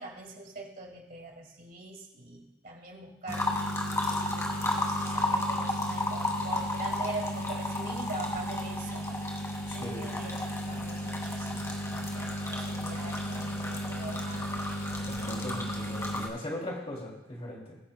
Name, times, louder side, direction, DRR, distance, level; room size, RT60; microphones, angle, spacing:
voice 1, 0.0-3.6 4.1-9.1 9.7-14.5 15.3-15.6, right 2 dB, 50° right, 1 dB, 2.1 m, -43 dB
sound 1, 3.3-16.3, left 1 dB, 15° left, 2.0 m, -32 dB
voice 2, 9.7-10.0 15.0-17.8, left 1 dB, 35° left, -2 dB, 2.7 m, -39 dB
23.0 x 10.0 x 2.2 m, 0.91 s
head